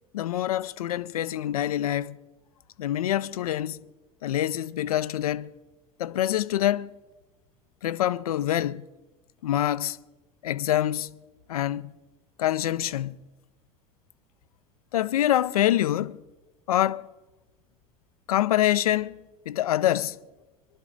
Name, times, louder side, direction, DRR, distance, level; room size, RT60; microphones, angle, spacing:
voice 1, 0.1-2.2 2.8-3.8 4.2-5.5 6.0-6.9 7.8-8.8 9.4-10.0 10.4-11.2 11.5-11.9 12.4-13.2 14.9-16.2 16.7-17.1 18.3-19.2 19.5-20.2, left 12 dB, 85° left, 0.4 m, -25 dB
22.0 x 12.0 x 3.8 m
hypercardioid pair, 80°, 18 cm